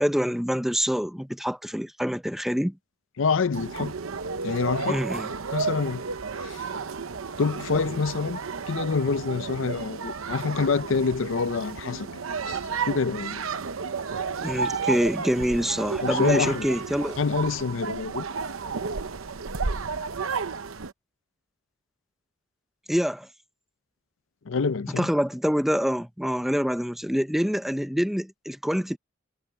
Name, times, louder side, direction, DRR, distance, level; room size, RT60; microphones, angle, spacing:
voice 1, 0.0-2.8 4.9-5.3 14.4-17.2 22.9-23.3 25.0-29.0, equal, ahead, 0.7 m, -26 dB
voice 2, 3.2-3.9 4.4-5.0 5.5-6.0 6.4-6.7 7.4-8.4 8.7-12.1 12.5-12.6 12.8-13.4 16.0-16.7 17.2-18.2 24.5-25.1, left 4 dB, 70° left, 0.5 m, -26 dB
sound 1, 3.5-20.9, right 5 dB, 85° right, 0.9 m, -32 dB
head